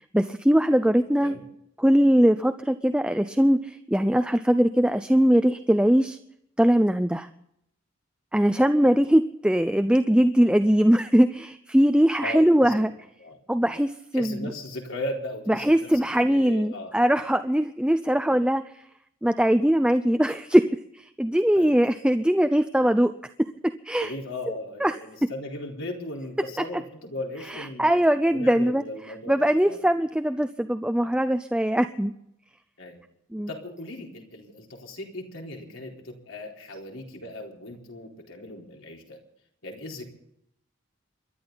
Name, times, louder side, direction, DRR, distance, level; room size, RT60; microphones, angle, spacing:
voice 1, 0.1-1.3 1.8-6.2 6.6-7.3 8.3-12.9 13.5-14.5 15.5-18.8 19.2-23.1 23.4-23.5 23.8-24.1 24.8-25.0 27.5-28.8 29.3-32.1 33.3-33.5, equal, 5° right, 9 dB, 0.5 m, -21 dB
voice 2, 12.2-12.9 13.2-13.4 14.1-16.9 21.5-21.7 24.0-27.9 28.3-29.8 31.0-31.1 32.8-33.0 33.5-39.2 39.6-40.0, left 1 dB, 85° left, 0 dB, 4.2 m, -37 dB
28.0 x 12.5 x 4.0 m, 0.76 s
head